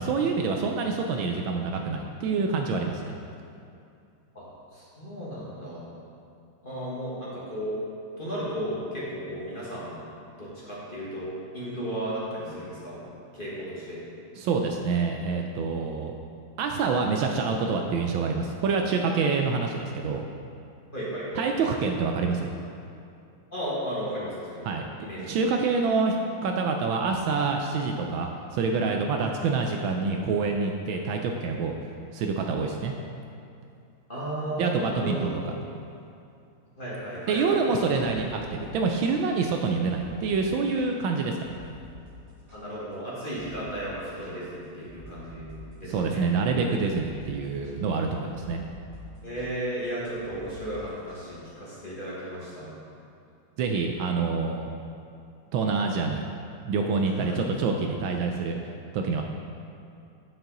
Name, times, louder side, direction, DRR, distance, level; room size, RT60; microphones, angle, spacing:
voice 1, 0.0-3.2 14.4-16.1 16.6-20.2 21.3-22.5 24.7-24.8 25.2-26.1 26.4-31.7 32.1-32.9 34.6-35.5 37.3-41.6 45.9-48.6 53.6-54.7 55.5-56.2 56.6-58.6 58.9-59.2, right 4 dB, 75° right, 2 dB, 1.2 m, -26 dB
voice 2, 4.7-5.8 6.6-7.8 8.2-10.0 10.4-13.0 13.3-14.0 20.9-21.6 23.5-24.6 25.0-25.4 34.1-35.3 36.8-37.6 42.5-45.5 45.8-46.2 49.2-52.7 57.1-57.4, right 1 dB, 30° left, -8 dB, 1.4 m, -34 dB
sound 1, 37.1-39.2 39.5-39.6 39.9-40.3 40.6-42.9 43.3-43.7 44.0-51.3, equal, 15° right, 1.3 m, -49 dB
9.2 x 5.9 x 3.8 m, 2.5 s
omnidirectional pair, 2.3 m